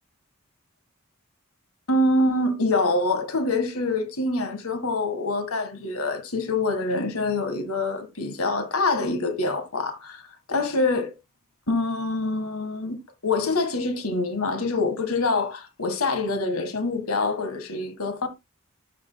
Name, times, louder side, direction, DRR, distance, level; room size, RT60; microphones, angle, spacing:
voice 1, 1.9-11.1 11.7-18.3, left 2 dB, 80° left, 1.8 m, -25 dB
13.0 x 6.3 x 2.3 m
head